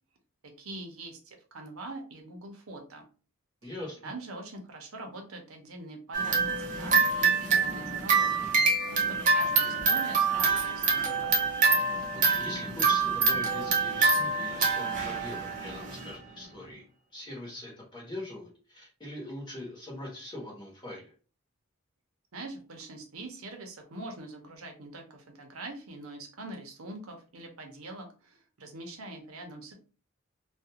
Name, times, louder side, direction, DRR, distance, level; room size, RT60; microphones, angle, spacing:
voice 1, 0.4-3.0 3.6-3.7 4.0-6.5 6.8-11.5 22.3-29.7, right 2 dB, 90° right, 3 dB, 0.7 m, -43 dB
voice 2, 3.6-4.1 12.1-16.8 17.1-21.1, left 1 dB, 20° left, -3 dB, 1.0 m, -41 dB
sound 1, 6.1-16.1, right 4 dB, 35° right, 0.5 m, -26 dB
2.4 x 2.2 x 2.7 m, 0.36 s
head